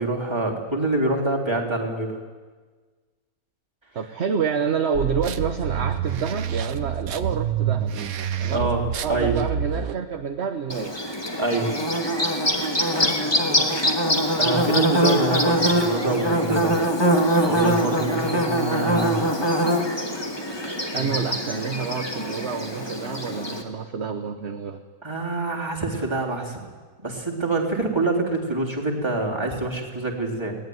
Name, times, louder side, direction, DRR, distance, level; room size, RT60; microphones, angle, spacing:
voice 1, 0.0-2.2 8.5-9.4 11.4-11.7 14.4-16.7 17.4-19.4 20.9-21.1 25.0-26.6 27.0-30.6, right 2 dB, 15° right, -2 dB, 3.5 m, -26 dB
voice 2, 3.9-7.9 8.4-8.7 9.0-11.0 13.0-13.7 20.9-24.8, right 6 dB, 45° right, 6 dB, 1.2 m, -28 dB
sound 1, 4.9-9.9, right 9 dB, 65° right, 1.3 m, -27 dB
Bird / Buzz, 10.7-23.6, equal, 15° left, 2.2 m, -23 dB
21.5 x 18.5 x 9.5 m, 1.5 s
omnidirectional pair, 1.7 m